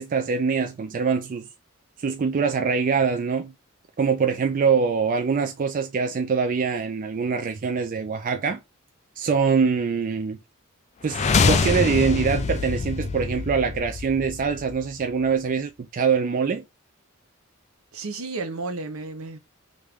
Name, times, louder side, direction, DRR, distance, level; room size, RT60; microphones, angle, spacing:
voice 1, 0.0-1.5 2.0-3.5 4.0-8.6 9.2-10.4 11.0-16.6, right 5 dB, 40° right, 0.4 m, -24 dB
sound 1, 11.0-15.0, left 4 dB, 30° left, 0.3 m, -25 dB
voice 2, 17.9-19.4, right 3 dB, 70° right, 0.8 m, -32 dB
3.1 x 2.6 x 3.4 m
head